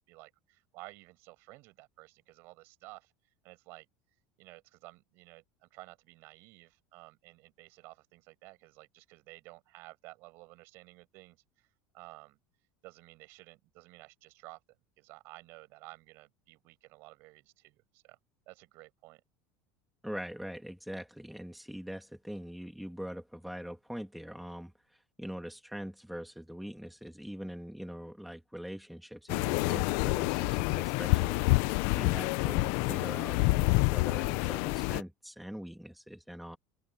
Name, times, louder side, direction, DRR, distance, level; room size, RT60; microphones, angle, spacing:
voice 1, 0.0-3.1 3.4-3.9 4.4-11.7 11.9-12.4 12.8-14.6 15.0-18.2 18.5-19.2, right 22 dB, 50° right, 7.5 m, -53 dB
voice 2, 20.0-24.7 25.2-31.4 31.9-36.6, equal, ahead, 1.8 m, -43 dB
sound 1, 29.3-35.0, left 23 dB, 55° left, 0.6 m, -28 dB
open air
cardioid pair, 170°, 5 cm